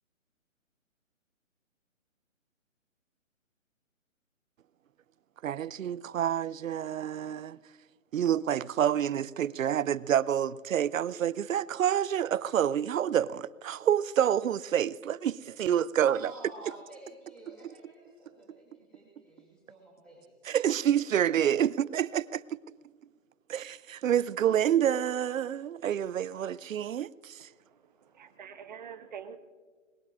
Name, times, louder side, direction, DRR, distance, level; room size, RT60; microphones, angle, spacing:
voice 1, 5.4-7.6 8.1-16.3 20.5-22.6 23.5-27.5, right 10 dB, 80° right, 0.6 m, -28 dB
voice 2, 16.2-20.4, right 1 dB, 5° left, 3.0 m, -51 dB
voice 3, 28.1-29.4, right 7 dB, 35° right, 1.0 m, -44 dB
22.5 x 21.0 x 2.5 m
hypercardioid pair, 165°, 39 cm